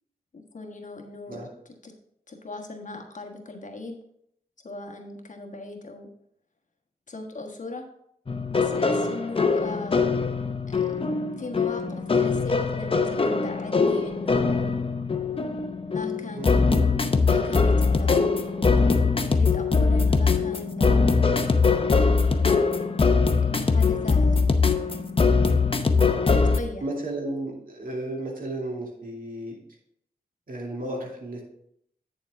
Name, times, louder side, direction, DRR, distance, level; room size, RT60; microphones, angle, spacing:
voice 1, 0.3-1.4 1.8-1.9 2.3-4.0 4.6-6.1 7.1-7.8 8.5-10.1 10.7-10.8 11.4-14.6 15.9-16.7 17.2-18.5 19.2-21.3 23.4-24.4 26.3-26.8, left 2 dB, 55° left, 2 dB, 1.4 m, -38 dB
sound 1, 8.3-26.6, left 4 dB, 35° left, 0.7 m, -22 dB
voice 2, 16.4-16.8 25.9-26.2 26.8-29.6 30.5-31.4, right 1 dB, 65° right, -2 dB, 2.4 m, -34 dB
9.0 x 7.1 x 3.5 m, 0.70 s
wide cardioid pair, 110°, 15 cm